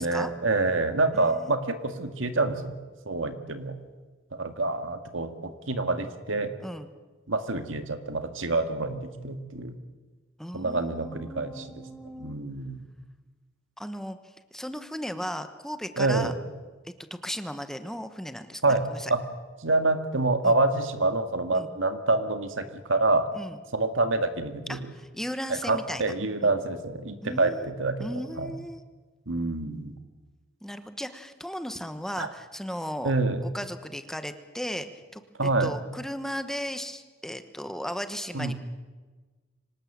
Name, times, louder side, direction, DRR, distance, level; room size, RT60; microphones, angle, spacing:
voice 1, 0.0-2.8 3.1-3.7 4.3-6.5 7.3-9.7 10.5-11.9 12.2-12.8 16.0-16.3 18.6-19.2 19.6-23.3 23.7-24.8 25.6-28.5 29.3-30.0 32.2-32.3 33.0-33.4 35.4-35.7 38.3-38.5, right 2 dB, 75° right, 8 dB, 2.0 m, -27 dB
voice 2, 1.1-1.5 6.6-6.9 10.4-12.4 13.8-14.2 14.5-16.3 17.1-19.1 20.4-20.5 21.5-21.7 23.3-23.6 24.7-26.1 26.4-26.5 27.2-27.7 28.0-28.8 30.6-33.1 33.5-34.9 35.1-38.5, equal, ahead, 9 dB, 1.1 m, -36 dB
25.0 x 19.0 x 7.5 m, 1.3 s
head